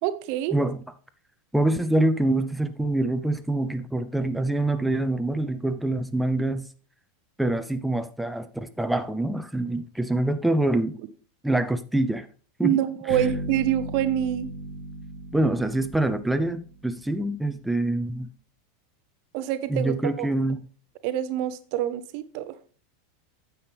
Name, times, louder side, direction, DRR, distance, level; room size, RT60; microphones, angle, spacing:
voice 1, 0.0-0.6 12.6-14.5 19.3-20.3 21.0-22.5, right 11 dB, 55° right, 0.8 m, -26 dB
voice 2, 1.5-6.7 7.4-11.0 11.4-12.3 12.6-12.7 13.1-13.2 15.3-18.3 19.7-20.6, right 1 dB, 5° right, 0.7 m, -25 dB
sound 1, 13.1-17.1, right 1 dB, 55° left, 3.4 m, -36 dB
9.5 x 7.1 x 3.4 m
hypercardioid pair, 90°, 0 cm